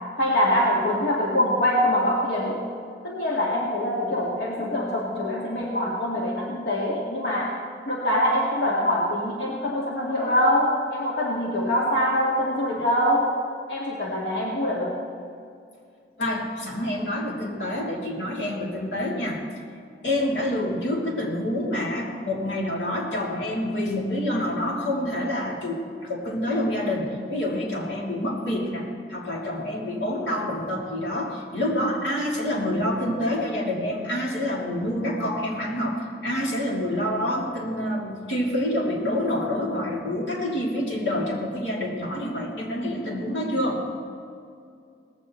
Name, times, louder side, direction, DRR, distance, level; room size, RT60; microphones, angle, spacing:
voice 1, 0.2-2.6 3.0-7.6 7.9-13.3 13.7-15.0, left 1 dB, 70° left, -5 dB, 1.9 m, -24 dB
voice 2, 16.2-19.4 20.0-43.8, left 1 dB, 90° left, -3 dB, 2.9 m, -27 dB
18.5 x 15.5 x 3.1 m, 2.3 s
head